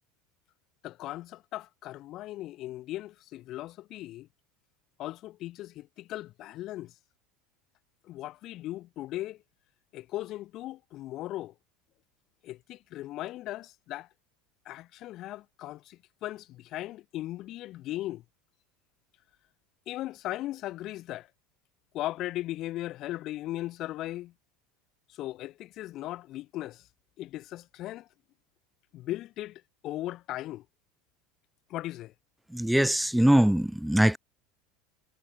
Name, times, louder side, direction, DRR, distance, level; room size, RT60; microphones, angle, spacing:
voice 1, 0.8-4.3 5.0-6.9 8.0-9.4 9.9-11.5 12.4-14.1 14.7-18.2 19.9-21.3 21.9-24.3 25.1-26.9 27.2-28.1 28.9-30.7 31.7-32.1, left 15 dB, 50° left, 4.0 m, -38 dB
voice 2, 32.5-34.2, right 1 dB, 5° right, 0.3 m, -22 dB
supercardioid pair, 105°, 0 cm